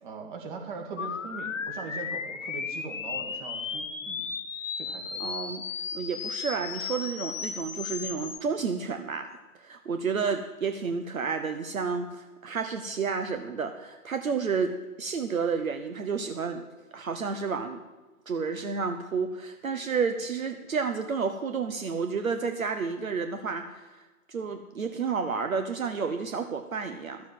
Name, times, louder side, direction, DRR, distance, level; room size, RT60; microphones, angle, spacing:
voice 1, 0.0-4.3 4.8-5.3, right 4 dB, 35° right, 2 dB, 2.1 m, -40 dB
sound 1, 1.0-8.4, left 5 dB, 60° left, 1.3 m, -35 dB
voice 2, 5.2-5.6 5.9-9.4 9.6-16.6 16.9-17.8 18.3-27.2, right 5 dB, 70° right, 7 dB, 1.0 m, -31 dB
12.5 x 7.2 x 7.6 m, 1.2 s
figure-of-eight pair, 135°, 44 cm